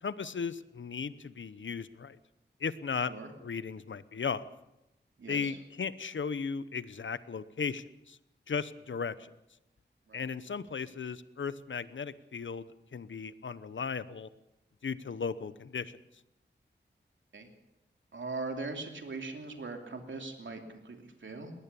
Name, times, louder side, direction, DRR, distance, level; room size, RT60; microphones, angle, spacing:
voice 1, 0.0-2.2 2.6-3.1 3.4-4.5 5.3-8.2 8.5-9.3 10.1-14.3 14.8-15.9, left 5 dB, 85° left, 15 dB, 0.9 m, -36 dB
voice 2, 5.2-5.6 10.1-10.2 17.3-17.5 18.1-21.5, right 3 dB, 90° right, 4 dB, 3.0 m, -40 dB
21.0 x 18.0 x 6.9 m, 0.91 s
wide cardioid pair, 85°, 19 cm